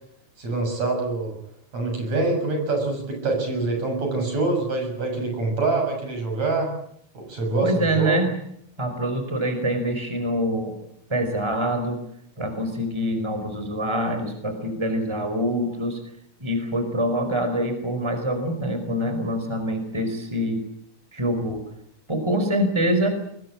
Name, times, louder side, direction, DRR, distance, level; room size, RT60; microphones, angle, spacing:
voice 1, 0.4-1.4 1.7-6.7 7.1-8.3, right 3 dB, 70° right, 3 dB, 8.2 m, -25 dB
voice 2, 7.6-8.3 8.8-10.7 11.1-12.0 12.4-16.0 16.4-20.6 21.1-21.6 22.1-23.1, right 1 dB, 10° right, 7 dB, 4.9 m, -25 dB
24.5 x 21.5 x 8.7 m, 0.72 s
omnidirectional pair, 3.3 m